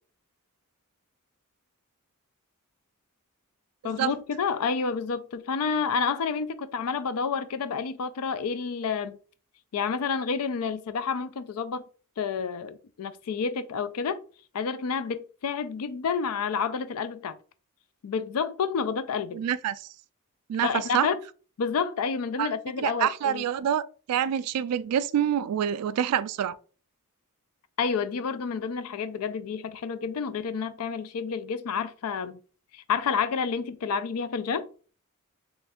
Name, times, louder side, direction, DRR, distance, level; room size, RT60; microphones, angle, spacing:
voice 1, 3.8-9.2 9.7-11.8 12.2-14.2 14.5-17.4 18.0-19.4 20.6-21.2 21.6-23.4 27.8-32.4 32.7-34.7, left 5 dB, 70° left, 0.4 m, -29 dB
voice 2, 19.3-19.9 20.5-21.1 22.4-22.5 22.8-26.6, right 9 dB, 80° right, 0.3 m, -27 dB
3.1 x 2.5 x 3.5 m
head